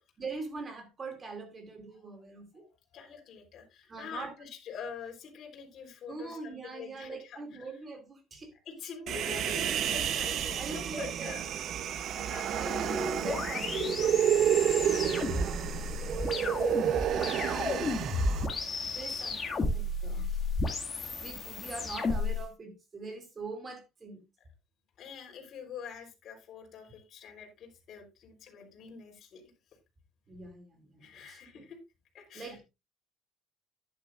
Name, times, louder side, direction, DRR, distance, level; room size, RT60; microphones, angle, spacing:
voice 1, 0.2-2.7 3.9-4.3 6.1-8.5 9.1-9.3 10.5-11.4 11.8-12.3 12.6-15.7 16.1-18.1 18.9-20.4 21.2-24.2 30.3-31.6 32.3-32.6, right 3 dB, 20° right, 2.6 m, -43 dB
voice 2, 2.9-7.6 8.7-11.5 12.2-12.7 20.1-20.3 25.0-29.4 31.0-31.8 32.1-32.6, left 6 dB, 40° left, 3.8 m, -45 dB
Human voice, 9.1-18.5, right 9 dB, 45° right, 0.8 m, -30 dB
sound 1, 12.7-22.4, left 3 dB, 20° left, 2.0 m, -33 dB
11.5 x 10.5 x 2.5 m
cardioid pair, 160°, 0 cm